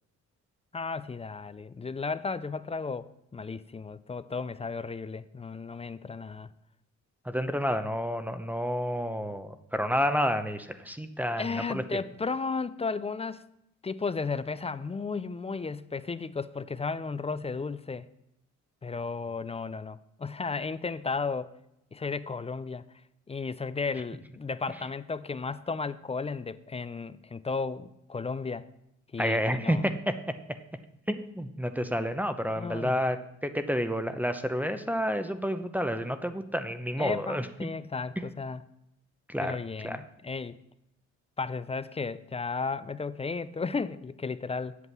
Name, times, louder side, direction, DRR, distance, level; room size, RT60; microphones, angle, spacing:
voice 1, 0.7-6.5 11.4-13.4 13.8-18.1 18.8-21.5 21.9-22.8 23.3-28.7 29.1-29.8 32.6-33.0 37.0-38.6 39.4-40.6 41.4-44.8, left 4 dB, 20° left, 15 dB, 0.5 m, -34 dB
voice 2, 7.2-12.0 29.2-30.2 31.1-33.2 33.4-37.5 39.3-39.6 39.8-40.0, equal, 5° right, 9 dB, 0.8 m, -29 dB
8.3 x 7.7 x 7.2 m, 0.82 s
cardioid pair, 90°, 30 cm